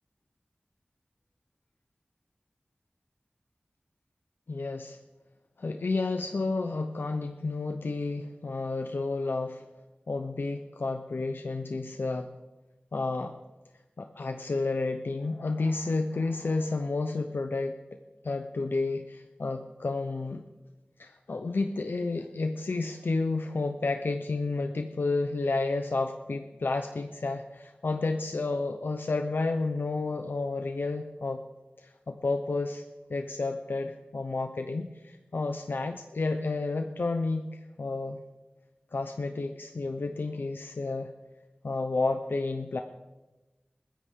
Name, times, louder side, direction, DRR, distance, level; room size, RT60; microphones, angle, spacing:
voice 1, 4.5-5.0 5.6-9.6 10.1-12.3 12.9-13.4 14.0-17.8 18.2-20.4 21.0-31.4 31.8-32.8 33.1-38.2 38.9-41.1 41.6-42.8, left 3 dB, 90° left, 6 dB, 0.7 m, -31 dB
21.5 x 14.5 x 3.7 m, 1.1 s
wide cardioid pair, 45°, 3 cm